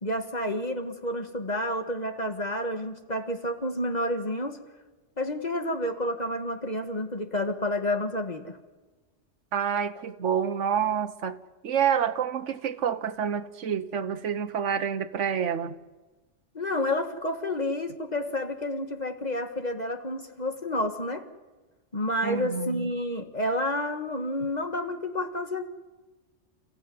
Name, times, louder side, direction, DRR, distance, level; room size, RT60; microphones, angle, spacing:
voice 1, 0.0-4.6 5.2-8.6 16.5-21.2 21.9-25.6, left 1 dB, 35° left, 6 dB, 1.7 m, -30 dB
voice 2, 9.5-11.4 11.6-15.7 22.2-22.9, right 8 dB, 70° right, 9 dB, 1.4 m, -28 dB
29.5 x 15.0 x 9.4 m, 1.3 s
omnidirectional pair, 1.3 m